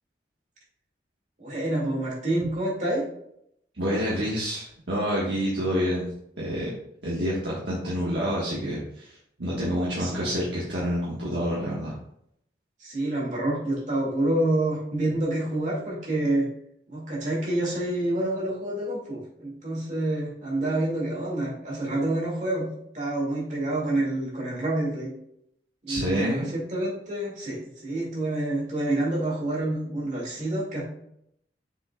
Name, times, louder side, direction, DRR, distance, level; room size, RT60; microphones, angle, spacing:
voice 1, 1.4-3.0 9.7-10.3 12.8-16.5 16.9-22.7 22.9-25.1 25.8-30.8, right 1 dB, 45° right, -5 dB, 2.4 m, -28 dB
voice 2, 3.7-6.1 6.4-6.7 7.0-11.9 25.9-26.5, equal, 90° right, -7 dB, 1.6 m, -28 dB
6.8 x 5.8 x 2.4 m, 0.73 s
head